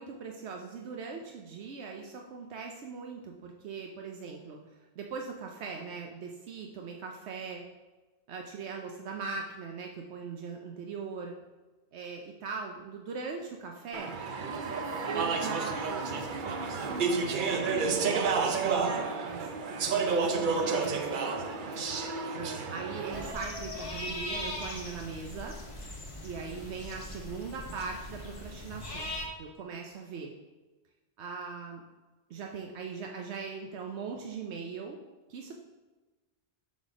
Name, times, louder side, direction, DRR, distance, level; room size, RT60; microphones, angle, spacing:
voice 1, 0.0-7.6 8.3-11.3 11.9-14.1 15.0-16.0 16.4-21.3 22.3-25.6 26.2-29.1 29.4-30.3 31.2-31.8 32.3-35.0 35.3-35.5, right 5 dB, 85° right, 1 dB, 1.0 m, -40 dB
Speech / Chatter, 13.9-23.3, right 4 dB, 55° right, 0.7 m, -30 dB
sound 1, 23.1-29.3, left 1 dB, 30° left, 1.2 m, -40 dB
7.4 x 4.1 x 4.9 m, 1.2 s
omnidirectional pair, 1.1 m